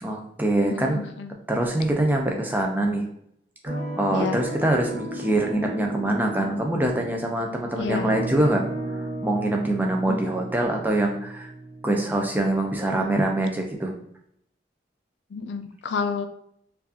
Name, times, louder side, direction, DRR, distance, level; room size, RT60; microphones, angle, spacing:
voice 1, 0.0-1.1 1.5-3.1 3.6-8.6 8.9-11.5 11.8-13.9, right 1 dB, 10° right, 1 dB, 0.5 m, -24 dB
voice 2, 0.7-1.3 4.1-4.4 7.8-8.1 10.1-10.2 12.9-13.2 15.3-16.3, left 5 dB, 70° left, 9 dB, 0.4 m, -30 dB
sound 1, 3.7-12.9, right 1 dB, 40° right, 0.9 m, -34 dB
4.5 x 2.5 x 2.7 m, 0.71 s
head